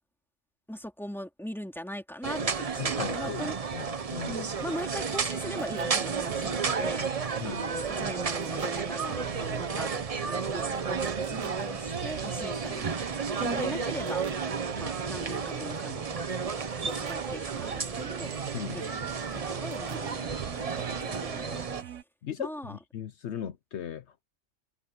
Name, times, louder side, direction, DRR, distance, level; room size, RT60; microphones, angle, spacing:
voice 1, 0.7-3.6 4.2-7.1 7.4-9.9 10.2-12.9 13.4-14.2 14.8-16.1 16.4-18.3 18.7-22.0 22.4-22.8, equal, ahead, 3.0 m, -40 dB
sound 1, 2.2-21.8, right 5 dB, 35° right, 0.8 m, -32 dB
voice 2, 2.8-3.4 3.7-4.4 7.4-7.6 18.5-18.8 22.2-24.2, left 9 dB, 70° left, 1.0 m, -38 dB
sound 2, 4.9-22.0, right 10 dB, 85° right, 1.2 m, -43 dB
omnidirectional pair, 1.2 m